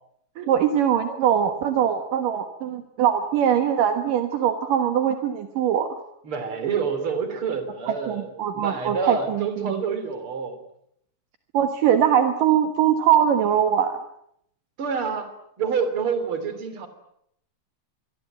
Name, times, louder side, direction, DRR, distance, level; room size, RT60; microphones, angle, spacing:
voice 1, 0.5-5.9 8.1-9.7 11.5-14.0, right 9 dB, 65° right, 7 dB, 2.9 m, -22 dB
voice 2, 6.2-10.6 14.8-15.3 15.6-16.9, right 5 dB, 35° right, 10 dB, 3.8 m, -28 dB
25.5 x 22.0 x 9.1 m, 0.74 s
omnidirectional pair, 4.3 m